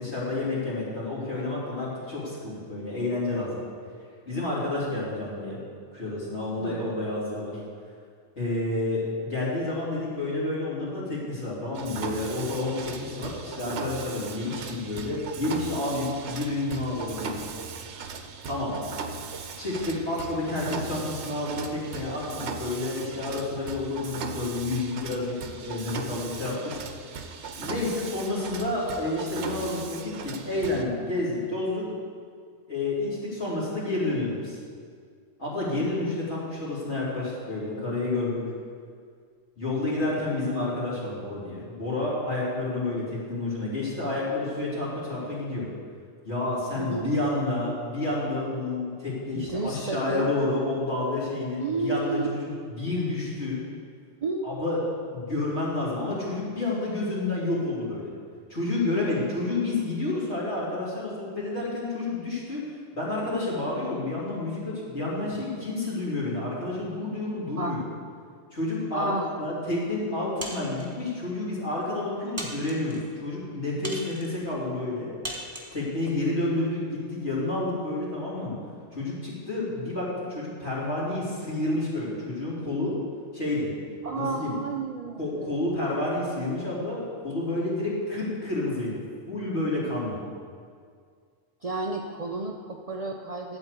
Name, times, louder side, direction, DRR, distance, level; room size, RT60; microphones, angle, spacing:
voice 1, 0.0-3.6 4.2-5.6 5.9-7.6 8.4-17.4 18.4-18.8 19.6-26.7 27.6-31.9 32.7-34.6 35.4-38.4 39.6-45.7 46.2-53.6 54.4-54.8 55.1-58.1 58.5-62.6 62.9-67.8 68.5-75.1 75.7-76.8 77.1-78.5 78.9-82.9 83.3-83.7 84.1-84.5 85.2-89.0 89.3-90.2, left 2 dB, 60° left, -8 dB, 3.3 m, -29 dB
voice 2, 6.5-6.9 46.8-47.1 49.3-50.3 51.6-52.3 54.2-54.5 67.6-67.8 68.9-69.3 84.0-85.7 91.6-93.6, right 3 dB, 45° right, 1 dB, 0.5 m, -31 dB
Mechanisms, 11.7-30.8, right 5 dB, 70° right, 1.0 m, -38 dB
sound 1, 70.4-71.0 71.7-71.8 72.4-73.0 73.8-74.4 75.2-75.8, right 1 dB, 10° right, 1.4 m, -37 dB
12.0 x 4.5 x 8.1 m, 2.1 s
omnidirectional pair, 1.3 m